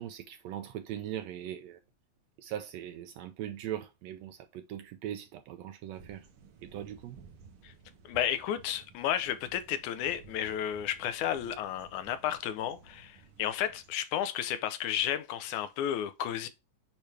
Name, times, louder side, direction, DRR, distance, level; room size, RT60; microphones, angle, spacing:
voice 1, 0.0-1.8 2.4-6.3 6.6-7.2, right 11 dB, 80° right, 1.6 m, -40 dB
sound 1, 5.9-13.9, right 5 dB, 60° right, 1.5 m, -56 dB
voice 2, 8.1-16.5, left 10 dB, 80° left, 2.2 m, -32 dB
8.6 x 3.2 x 3.3 m
omnidirectional pair, 3.5 m